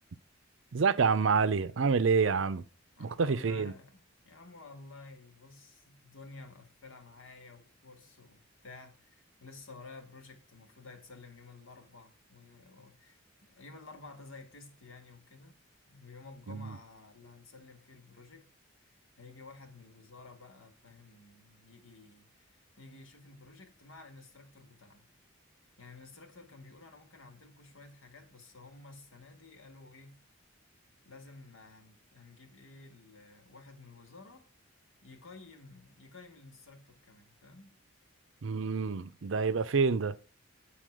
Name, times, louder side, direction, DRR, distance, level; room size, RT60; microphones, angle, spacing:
voice 1, 0.7-2.7 3.0-3.7 16.5-16.8 38.4-40.2, right 5 dB, 65° right, 0.5 m, -28 dB
voice 2, 3.0-15.6 15.9-18.5 18.8-25.0 25.8-30.2 31.0-34.5 35.0-37.8, left 3 dB, 80° left, 1.9 m, -52 dB
9.1 x 4.2 x 6.1 m
head